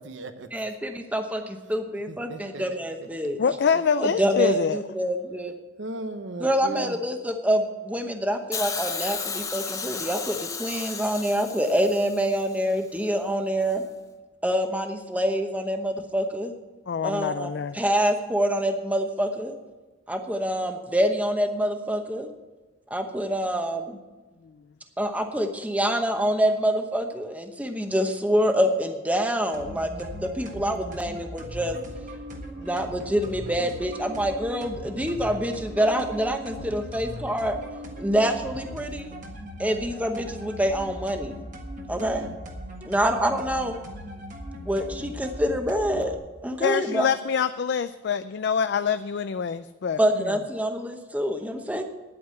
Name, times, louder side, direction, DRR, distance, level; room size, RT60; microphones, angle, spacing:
voice 1, 0.0-0.5 2.1-2.6 3.0-3.3 3.7-3.8 4.3-4.4 5.8-7.0 41.9-42.4, right 2 dB, 65° right, 9 dB, 0.9 m, -37 dB
voice 2, 0.5-3.4 4.0-5.5 6.4-13.8 14.4-16.5 17.0-19.6 20.1-22.3 22.9-24.0 25.0-31.8 32.6-37.6 38.0-39.1 39.6-41.5 41.9-42.3 42.8-43.8 44.7-46.1 46.4-47.1 50.0-51.8, equal, 5° right, 5 dB, 0.9 m, -26 dB
voice 3, 3.4-4.8 16.9-17.8 46.6-50.4, left 6 dB, 55° left, 11 dB, 0.4 m, -25 dB
Hiss, 8.5-12.7 13.7-13.8, left 5 dB, 15° left, 0.7 m, -34 dB
sound 1, 29.5-46.2, equal, 40° right, 1.6 m, -39 dB
10.0 x 8.6 x 7.6 m, 1.2 s
head